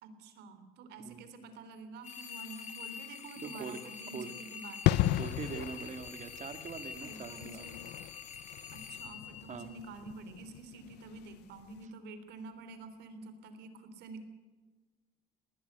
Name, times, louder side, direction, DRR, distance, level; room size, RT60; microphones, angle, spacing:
voice 1, 0.0-4.9 7.0-7.8 8.7-14.2, right 3 dB, 80° right, 10 dB, 3.5 m, -48 dB
sound 1, 2.0-10.2, left 7 dB, 45° left, 3.0 m, -46 dB
voice 2, 3.4-3.8 4.1-4.3 5.2-7.6 9.5-9.7, right 6 dB, 45° right, 9 dB, 2.2 m, -42 dB
sound 2, 4.8-11.3 11.6-11.8, left 15 dB, 80° left, 0.7 m, -35 dB
20.0 x 19.0 x 8.2 m, 1.4 s
cardioid pair, 110°, 17 cm